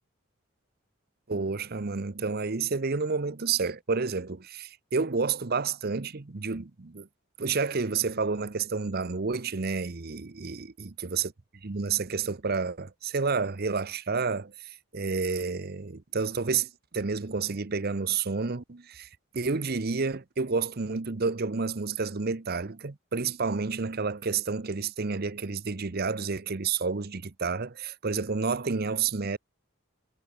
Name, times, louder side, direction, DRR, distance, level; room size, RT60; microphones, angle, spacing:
voice 1, 1.3-7.1 7.4-11.3 11.6-19.1 19.3-29.4, right 4 dB, 50° right, 0.8 m, -30 dB
head